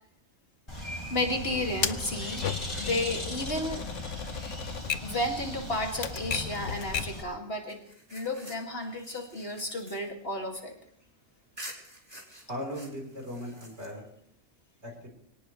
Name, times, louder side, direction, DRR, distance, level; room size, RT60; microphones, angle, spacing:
Bird, 0.7-7.2, equal, 20° left, 4.4 m, -38 dB
voice 1, 1.1-2.4 2.8-3.8 5.0-7.8 8.1-10.7, left 1 dB, 50° left, 2 dB, 2.8 m, -32 dB
Typewriter, 1.8-7.3, left 8 dB, 70° left, 1.2 m, -36 dB
sound 1, 7.7-11.1 11.6-14.3, right 1 dB, 20° right, 3.2 m, -49 dB
voice 2, 12.5-14.0 14.8-15.1, equal, 55° right, 0 dB, 4.8 m, -38 dB
24.0 x 18.0 x 3.3 m, 0.63 s
omnidirectional pair, 1.3 m